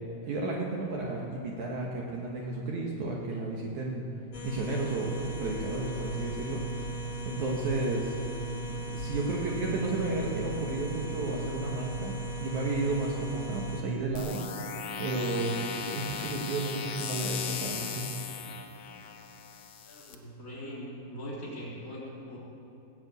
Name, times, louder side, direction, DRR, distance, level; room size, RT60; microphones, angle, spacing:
voice 1, 0.2-4.1 4.4-6.6 7.3-8.2 8.9-14.4 15.0-18.1, right 3 dB, 60° right, -2 dB, 2.2 m, -32 dB
sound 1, 4.3-13.8, right 1 dB, 50° left, 1.4 m, -36 dB
sound 2, 14.1-20.1, left 7 dB, 75° left, 1.7 m, -38 dB
voice 2, 19.8-22.4, equal, 20° left, -7 dB, 3.9 m, -41 dB
19.5 x 7.7 x 8.1 m, 2.8 s
omnidirectional pair, 4.6 m